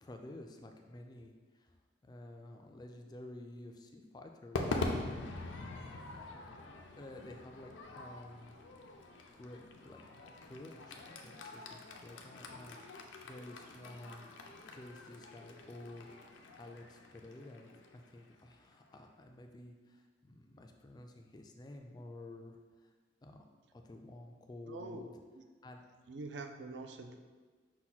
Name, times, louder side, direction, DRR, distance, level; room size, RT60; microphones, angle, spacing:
voice 1, 0.0-1.7 2.0-5.4 7.0-8.5 9.3-10.0 10.4-12.8 13.2-16.1 16.6-22.9 23.2-23.4 23.8-25.1 25.6-25.8, left 1 dB, 20° left, 4 dB, 0.3 m, -51 dB
Crowd / Fireworks, 4.5-18.9, left 2 dB, 90° left, 0.5 m, -44 dB
voice 2, 24.7-25.0 25.3-25.4 26.1-27.2, right 3 dB, 65° right, 5 dB, 0.4 m, -45 dB
5.7 x 2.2 x 4.1 m, 1.4 s
head